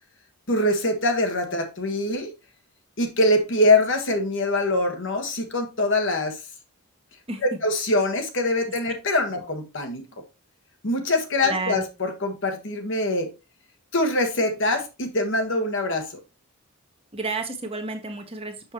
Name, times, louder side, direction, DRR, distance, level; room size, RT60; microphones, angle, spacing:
voice 1, 0.5-2.3 3.0-6.4 7.6-10.1 10.8-13.3 13.9-16.1, left 2 dB, 55° left, 1.3 m, -23 dB
voice 2, 11.4-11.8 17.1-18.7, right 3 dB, 25° right, 1.0 m, -31 dB
6.3 x 6.3 x 2.9 m
head